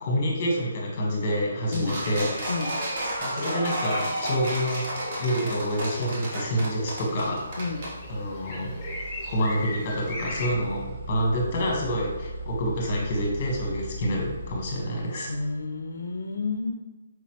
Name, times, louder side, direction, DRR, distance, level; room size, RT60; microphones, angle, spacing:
voice 1, 0.0-2.5 3.2-4.9 5.2-7.4 8.1-8.7 9.3-15.3, equal, 30° left, -2 dB, 1.2 m, -27 dB
sound 1, 1.3-15.5, right 1 dB, 10° right, 1.1 m, -41 dB
sound 2, 1.7-7.9, right 1 dB, 40° right, 1.0 m, -32 dB
sound 3, 4.6-10.5, left 1 dB, 10° left, 0.7 m, -39 dB
voice 2, 15.3-16.7, left 3 dB, 80° left, 4 dB, 0.4 m, -30 dB
4.7 x 3.0 x 2.9 m, 1.2 s
hypercardioid pair, 170°, 0 cm